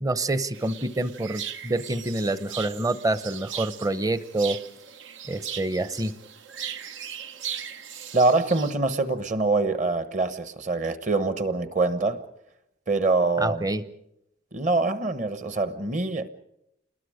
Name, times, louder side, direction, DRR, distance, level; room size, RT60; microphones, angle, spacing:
voice 1, 0.0-4.6 5.3-6.1 13.4-13.8, right 2 dB, 20° right, 0.7 m, -27 dB
sound 1, 0.5-8.7, right 8 dB, 85° right, 1.0 m, -38 dB
voice 2, 8.1-12.2 12.9-13.6 14.5-16.3, right 3 dB, 40° right, 1.1 m, -24 dB
28.0 x 21.0 x 5.0 m
head